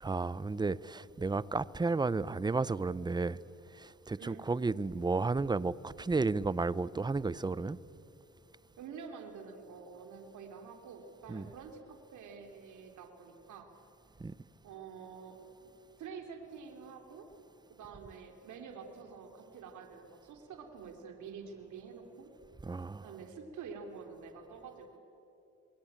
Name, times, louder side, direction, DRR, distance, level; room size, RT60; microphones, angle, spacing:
voice 1, 0.0-3.4 3.8-7.8 11.3-11.5 14.2-14.3 22.6-23.1, right 3 dB, 15° right, 0.6 m, -32 dB
voice 2, 8.8-11.8 12.1-13.7 14.6-15.7 16.0-17.3 17.7-22.3 23.0-25.0, right 5 dB, 75° right, 3.3 m, -48 dB
27.5 x 22.0 x 8.9 m
cardioid pair, 90°, 30 cm